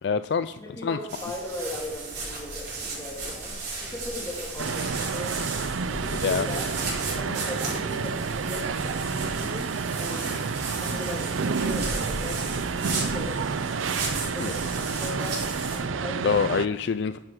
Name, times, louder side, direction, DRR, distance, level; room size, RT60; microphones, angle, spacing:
voice 1, 0.0-1.0 6.2-6.5 14.4-14.5 16.2-17.2, left 5 dB, 60° left, 12 dB, 0.3 m, -26 dB
voice 2, 0.6-3.5 3.8-5.4 5.9-10.3 10.8-13.4 14.2-15.4 15.7-16.3, left 1 dB, 15° left, -3 dB, 2.9 m, -38 dB
sound 1, 1.1-15.8, right 3 dB, 55° right, 4.6 m, -35 dB
sound 2, 4.6-16.7, right 5 dB, 80° right, 0.5 m, -30 dB
10.0 x 7.7 x 6.2 m, 0.95 s
head